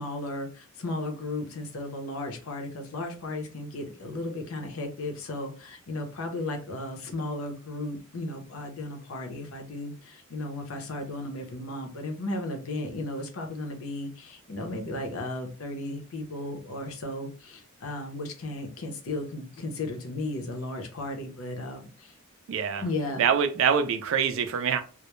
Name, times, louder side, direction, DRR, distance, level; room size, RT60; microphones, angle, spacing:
voice 1, 0.0-22.1 22.8-23.2, left 2 dB, 70° left, 0.6 m, -35 dB
voice 2, 22.5-22.8 23.2-24.8, right 7 dB, 65° right, 0.4 m, -24 dB
2.2 x 2.0 x 2.9 m
head